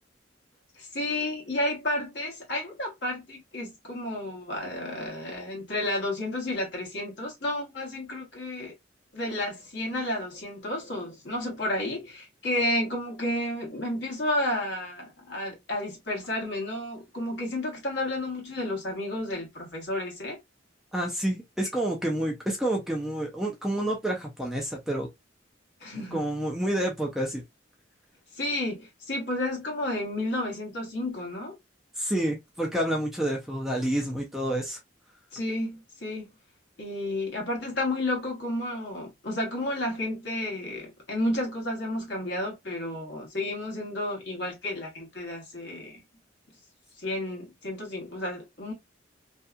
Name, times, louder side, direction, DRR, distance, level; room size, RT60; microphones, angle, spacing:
voice 1, 0.8-8.7 9.1-20.4 25.8-26.3 28.4-31.6 35.3-36.3 36.8-46.0 47.0-48.7, left 1 dB, 60° left, 1.2 m, -31 dB
voice 2, 20.9-25.1 25.9-27.4 32.0-34.8, right 1 dB, ahead, 0.4 m, -29 dB
2.7 x 2.2 x 2.2 m
head